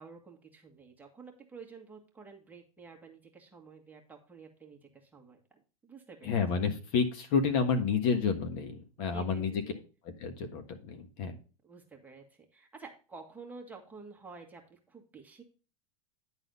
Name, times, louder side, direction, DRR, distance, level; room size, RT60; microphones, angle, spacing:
voice 1, 0.0-6.4 9.0-9.8 11.6-15.4, right 4 dB, 10° right, 1 dB, 1.7 m, -51 dB
voice 2, 6.2-9.6 10.0-11.4, left 5 dB, 50° left, 7 dB, 1.5 m, -30 dB
10.5 x 4.1 x 5.4 m, 0.35 s
supercardioid pair, 135°, 19 cm